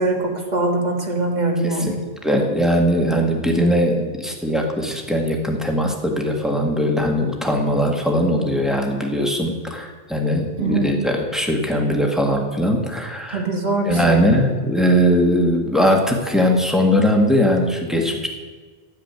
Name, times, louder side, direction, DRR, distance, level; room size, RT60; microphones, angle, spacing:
voice 1, 0.0-1.9 10.6-10.9 13.3-14.2, right 2 dB, 45° right, 1 dB, 1.9 m, -22 dB
voice 2, 1.6-2.0 2.2-13.4 13.8-18.3, equal, ahead, 1 dB, 1.7 m, -20 dB
10.5 x 7.6 x 9.5 m, 1.5 s
omnidirectional pair, 1.1 m